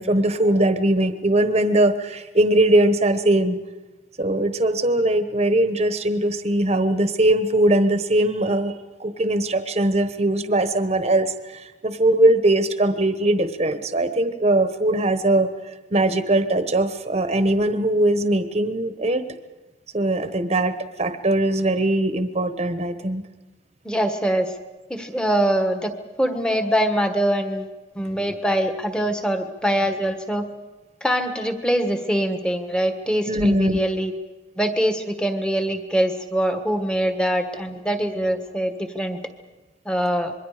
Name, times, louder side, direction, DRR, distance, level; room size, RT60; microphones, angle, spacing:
voice 1, 0.0-3.6 4.2-8.7 9.0-15.5 15.9-19.2 19.9-23.2 33.3-33.8, right 1 dB, 35° right, 9 dB, 1.1 m, -20 dB
voice 2, 23.8-24.5 24.9-25.9 26.2-27.7 27.9-30.4 31.0-34.1 34.6-39.2 39.8-40.3, equal, 5° left, 6 dB, 1.5 m, -23 dB
26.5 x 22.0 x 5.0 m, 1.1 s
head